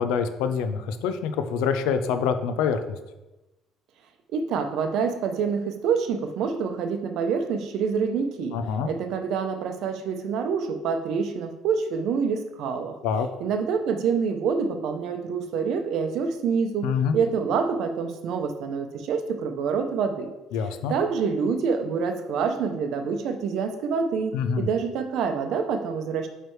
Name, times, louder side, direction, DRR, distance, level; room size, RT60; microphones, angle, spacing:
voice 1, 0.0-2.8 8.5-8.9 13.0-13.3 16.8-17.2 20.5-21.0 24.3-24.7, left 6 dB, 90° left, 9 dB, 0.5 m, -25 dB
voice 2, 4.3-13.0 13.4-20.3 20.9-26.3, right 6 dB, 65° right, 7 dB, 0.6 m, -27 dB
8.9 x 3.3 x 3.2 m, 1.0 s
cardioid pair, 130°, 0 cm